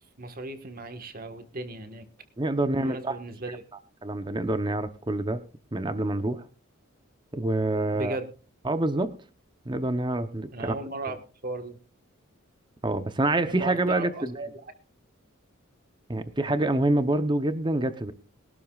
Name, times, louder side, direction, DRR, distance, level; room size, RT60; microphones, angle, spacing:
voice 1, 0.2-2.1 2.7-3.6 7.9-8.3 10.5-11.2 11.4-11.8 13.4-14.6, right 2 dB, 45° right, 8 dB, 1.5 m, -36 dB
voice 2, 2.4-3.2 3.5-3.6 4.0-5.4 5.7-6.4 7.3-8.2 8.6-9.2 9.7-10.7 12.8-14.4 16.1-18.1, right 2 dB, 20° right, 10 dB, 0.7 m, -26 dB
22.0 x 12.0 x 2.4 m, 0.35 s
head